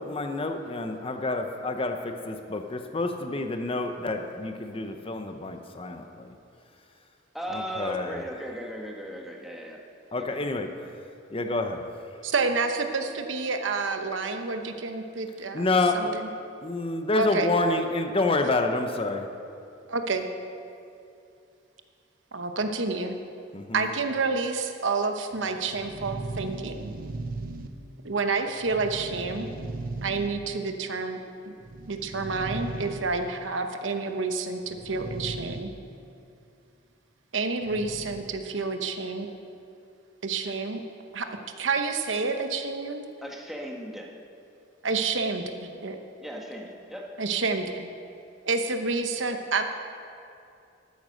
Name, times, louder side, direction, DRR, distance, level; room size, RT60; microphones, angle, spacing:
voice 1, 0.0-6.4 7.5-8.2 10.1-10.7 11.3-11.8 15.5-16.1 16.6-19.3 23.5-23.9, left 2 dB, 30° left, 5 dB, 0.7 m, -28 dB
voice 2, 7.3-9.8 10.2-10.4 43.2-44.1 46.2-47.1, equal, ahead, -1 dB, 1.5 m, -37 dB
voice 3, 12.2-15.7 15.9-16.3 17.1-17.5 19.9-20.3 22.3-23.2 23.7-27.0 28.0-29.5 30.0-31.2 31.9-35.7 37.3-39.3 40.2-40.8 41.1-41.3 41.6-43.1 44.8-46.0 47.2-47.9 48.5-49.6, right 4 dB, 75° right, 6 dB, 1.0 m, -29 dB
sound 1, 25.3-28.2 28.6-30.7 31.6-33.4 34.6-35.6 35.9-36.0 37.6-38.4, right 2 dB, 50° right, 0.8 m, -37 dB
12.5 x 9.3 x 6.4 m, 2.6 s
head